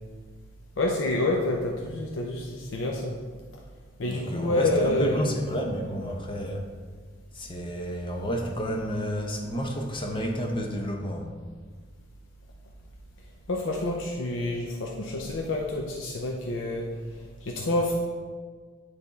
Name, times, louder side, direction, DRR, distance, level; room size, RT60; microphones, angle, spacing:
voice 1, 0.8-3.1 4.0-5.2 13.5-16.9 17.2-17.9, left 2 dB, 80° left, 0 dB, 0.6 m, -28 dB
voice 2, 4.0-6.6 7.3-11.3, equal, 25° left, 1 dB, 0.8 m, -30 dB
9.5 x 3.5 x 4.1 m, 1.5 s
head